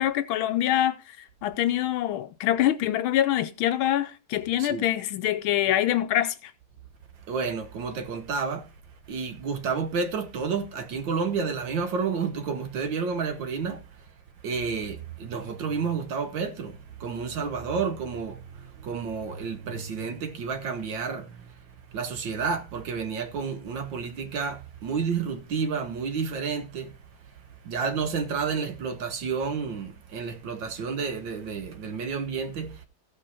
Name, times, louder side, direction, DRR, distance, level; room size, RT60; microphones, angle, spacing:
voice 1, 0.0-6.5, left 12 dB, 75° left, 1.4 m, -25 dB
voice 2, 7.3-8.7 9.1-13.8 14.4-21.4 21.9-26.9 27.6-32.8, right 5 dB, 65° right, 1.5 m, -30 dB
15.5 x 5.3 x 4.2 m
omnidirectional pair, 2.4 m